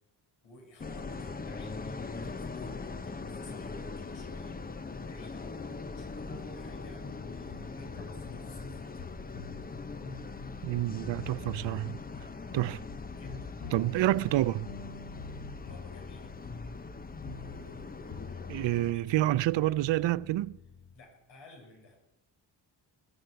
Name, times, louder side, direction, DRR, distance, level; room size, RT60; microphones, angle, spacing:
voice 1, 0.4-4.6 5.0-9.1 13.1-13.8 15.7-16.5 17.3-20.1 20.9-22.0, left 2 dB, 90° left, 6.4 m, -54 dB
sound 1, 0.8-18.9, left 4 dB, 20° left, 0.8 m, -41 dB
sound 2, 5.4-21.0, left 4 dB, 50° left, 1.8 m, -47 dB
voice 2, 10.6-12.0 12.5-12.8 13.7-14.7 18.5-20.6, right 15 dB, 80° right, 0.6 m, -28 dB
21.0 x 8.4 x 7.9 m
cardioid pair, 120°, 44 cm